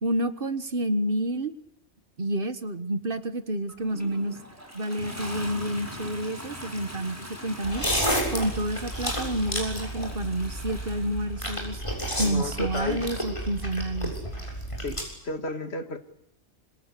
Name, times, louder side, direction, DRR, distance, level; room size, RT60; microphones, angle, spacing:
voice 1, 0.0-1.5 2.2-4.4 4.7-7.8 8.3-11.8 12.2-14.2, right 1 dB, 55° right, 12 dB, 1.7 m, -29 dB
Toilet flush, 3.7-12.1 13.2-13.3, equal, 15° right, 6.4 m, -42 dB
sound 1, 7.6-15.0, equal, 25° left, 7.2 m, -31 dB
voice 2, 12.2-13.1 14.8-16.0, left 2 dB, 65° left, 9 dB, 2.3 m, -32 dB
26.5 x 26.5 x 8.4 m, 0.71 s
omnidirectional pair, 1.1 m